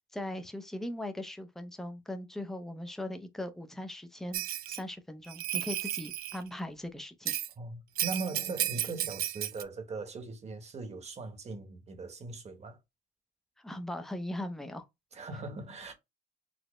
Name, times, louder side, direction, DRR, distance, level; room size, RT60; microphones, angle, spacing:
voice 1, 0.0-4.4 4.7-7.3 13.6-14.9, left 1 dB, ahead, 0.5 m, -39 dB
Bell, 4.3-4.8 5.3-6.4 7.3-7.5 8.0-9.6, right 13 dB, 50° right, 0.4 m, -33 dB
voice 2, 7.6-12.8 15.1-15.9, right 3 dB, 30° right, 1.1 m, -40 dB
4.1 x 2.1 x 3.0 m
cardioid pair, 115°, 21 cm